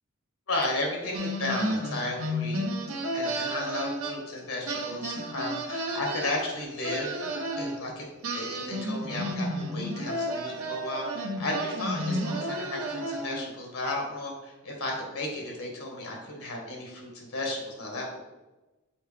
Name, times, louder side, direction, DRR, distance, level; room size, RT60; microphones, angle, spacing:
voice 1, 0.5-2.7 3.1-7.1 7.6-8.1 8.3-18.2, left 2 dB, 75° left, 0 dB, 1.6 m, -34 dB
sound 1, 1.1-4.4 4.7-7.7 8.2-13.5, equal, 80° right, 1.0 m, -32 dB
6.2 x 4.6 x 3.4 m, 1.1 s
head